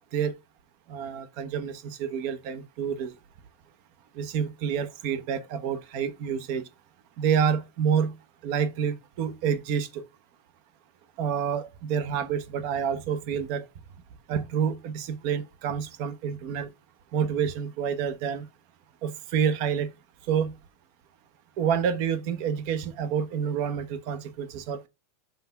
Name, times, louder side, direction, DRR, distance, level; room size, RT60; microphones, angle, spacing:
voice 1, 0.9-3.1 4.2-6.7 7.2-8.1 8.4-10.0 11.2-13.7 14.3-16.7 17.1-18.5 19.0-19.9 20.3-20.5 21.6-24.9, right 7 dB, 45° right, 1.0 m, -28 dB
5.8 x 3.5 x 5.7 m
supercardioid pair, 165°, 0 cm